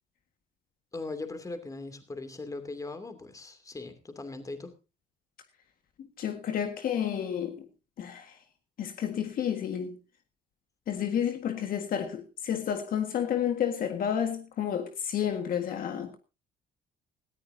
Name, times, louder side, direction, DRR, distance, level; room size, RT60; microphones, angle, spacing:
voice 1, 0.9-4.7, left 3 dB, 20° left, 2.7 m, -39 dB
voice 2, 6.0-7.7 8.0-8.4 8.8-10.0 10.9-16.2, left 9 dB, 60° left, 1.7 m, -31 dB
19.0 x 14.5 x 2.7 m
cardioid pair, 110°, 17 cm